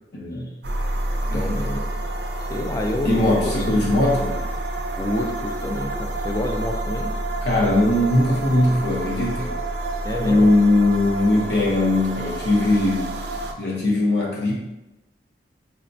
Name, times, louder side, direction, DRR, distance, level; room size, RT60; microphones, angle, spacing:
voice 1, 0.1-0.5 1.3-1.5 3.0-4.4 7.4-9.6 10.2-13.2 13.6-14.5, left 1 dB, 75° left, -4 dB, 0.8 m, -20 dB
sound 1, 0.6-13.5, right 1 dB, 70° right, 0.4 m, -28 dB
voice 2, 1.3-1.8 2.5-3.9 4.9-7.1 10.0-10.5, left 1 dB, 20° left, 3 dB, 0.3 m, -28 dB
5.7 x 2.1 x 2.6 m, 0.99 s
head